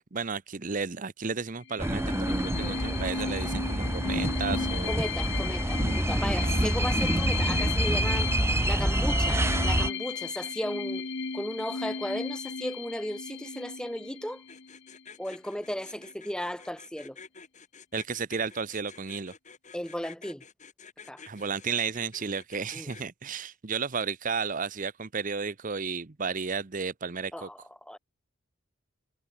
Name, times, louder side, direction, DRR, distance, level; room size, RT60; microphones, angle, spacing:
voice 1, 0.1-5.1 6.4-6.7 17.9-19.3 21.3-27.5, right 5 dB, 40° right, 0.8 m, -33 dB
sound 1, 1.6-15.0, left 6 dB, 60° left, 1.2 m, -35 dB
sound 2, 1.8-9.9, right 1 dB, 15° right, 1.0 m, -27 dB
voice 2, 4.9-8.3 8.7-11.1 11.3-14.4 15.2-17.2 19.7-20.4 21.1-21.2 22.7-22.9 27.3-28.0, equal, 5° left, 2.2 m, -35 dB
sound 3, 14.5-23.1, left 5 dB, 35° left, 4.1 m, -50 dB
head